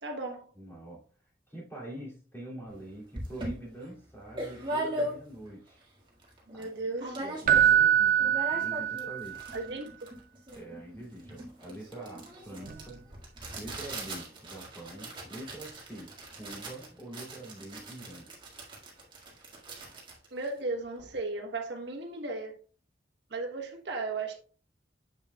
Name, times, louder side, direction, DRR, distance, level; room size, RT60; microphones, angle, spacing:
voice 1, 0.0-0.5 6.5-7.2 9.5-9.9 20.3-22.5 23.3-24.4, right 3 dB, 75° right, 1.2 m, -35 dB
voice 2, 0.6-1.0 1.5-5.8 6.5-6.9 7.2-9.4 10.5-13.0 13.5-18.3, right 1 dB, 15° left, 2.6 m, -45 dB
sound 1, 2.7-2.8 3.1-5.5 5.9-6.0 6.2-6.7 7.0-7.8 8.1-21.1, right 1 dB, 30° right, 2.0 m, -40 dB
Keyboard (musical), 7.5-9.4 12.7-12.8, right 10 dB, 50° right, 0.3 m, -24 dB
7.4 x 6.8 x 2.3 m
head